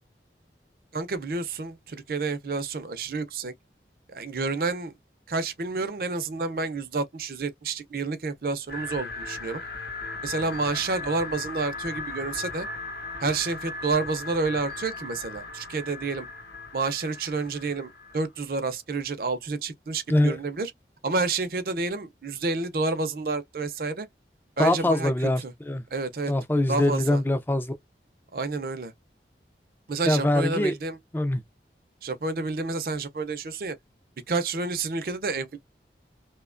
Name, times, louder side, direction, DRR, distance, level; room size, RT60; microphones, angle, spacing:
voice 1, 0.9-3.5 4.1-4.9 5.3-9.6 10.2-12.7 13.2-16.3 16.7-20.7 21.0-24.1 24.6-25.1 25.4-25.5 25.9-26.3 26.7-27.2 28.3-28.9 29.9-31.0 32.0-33.8 34.3-35.6, right 3 dB, 55° right, 0.5 m, -29 dB
sound 1, 8.7-18.2, left 3 dB, 60° left, 0.7 m, -37 dB
voice 2, 24.6-25.8 26.3-27.8 30.0-30.7 31.1-31.4, left 1 dB, 10° left, 0.4 m, -23 dB
2.7 x 2.2 x 2.4 m
head